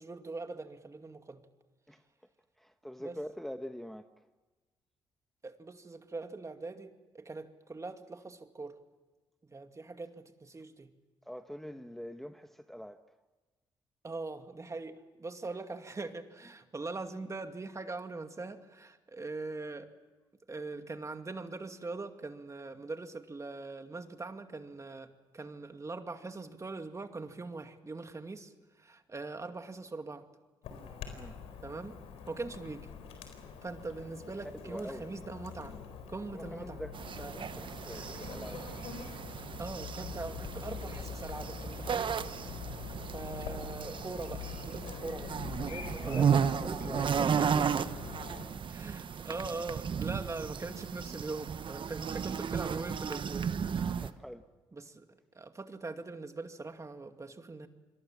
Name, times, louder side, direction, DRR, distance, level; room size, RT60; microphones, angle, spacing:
voice 1, 0.0-1.4 3.0-3.2 5.4-8.8 9.4-10.9 14.0-19.9 20.5-30.2 31.6-32.0 32.3-32.9 33.6-35.8 36.1-36.8 37.2-37.4 37.9-38.1 39.6-42.2 43.1-47.7 48.7-54.0 54.7-55.1 55.3-57.7, right 3 dB, 30° right, 7 dB, 2.4 m, -42 dB
voice 2, 2.6-4.1 11.3-13.0 15.5-15.6 31.1-31.4 34.0-34.1 34.4-35.0 36.3-38.6 38.9-39.0 45.8-47.6 48.1-48.5 52.1-52.2 54.0-54.4, equal, ahead, 7 dB, 1.3 m, -45 dB
Chirp tweet / Buzz, 30.6-48.5, left 7 dB, 85° left, 4.2 m, -45 dB
sound 1, 36.9-54.1, right 7 dB, 55° right, 1.2 m, -34 dB
27.0 x 22.5 x 7.4 m, 1.2 s
supercardioid pair, 60°, 10 cm